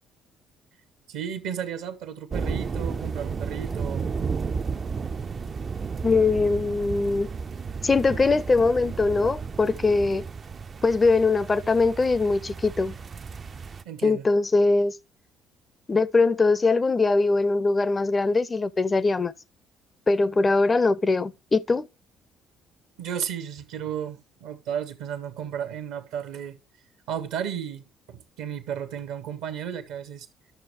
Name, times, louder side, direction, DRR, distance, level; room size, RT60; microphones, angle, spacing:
voice 1, 1.1-4.4 13.8-14.2 23.0-26.6 27.1-30.3, right 8 dB, 65° right, 0.8 m, -34 dB
sound 1, 2.3-13.8, right 5 dB, 35° right, 0.4 m, -33 dB
voice 2, 6.0-7.3 7.8-10.3 10.8-13.0 14.0-15.0 15.9-19.3 20.1-21.9, left 3 dB, 30° left, 0.5 m, -22 dB
11.0 x 6.3 x 3.0 m
figure-of-eight pair, 45°, 0 cm